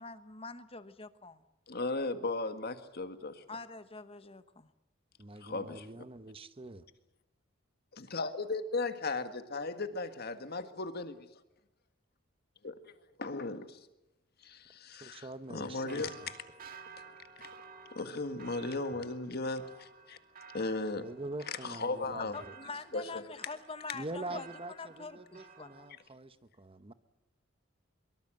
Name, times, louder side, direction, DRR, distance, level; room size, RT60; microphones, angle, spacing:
voice 1, 0.0-1.4 3.5-4.7 22.2-24.5 24.8-25.9, left 4 dB, 30° left, 12 dB, 1.2 m, -45 dB
voice 2, 1.7-3.4 5.4-5.9 7.9-11.2 12.6-12.9 13.2-13.8 14.4-16.2 17.9-20.2 20.5-21.1 21.6-22.4 22.9-23.2, left 3 dB, 50° left, 9 dB, 1.8 m, -36 dB
voice 3, 5.2-6.9 15.0-16.3 18.9-19.1 21.0-22.5 23.9-26.9, right 2 dB, 30° right, 12 dB, 1.0 m, -44 dB
sound 1, 15.2-25.9, right 5 dB, 45° right, 2.5 m, -54 dB
23.5 x 23.0 x 7.8 m, 0.90 s
head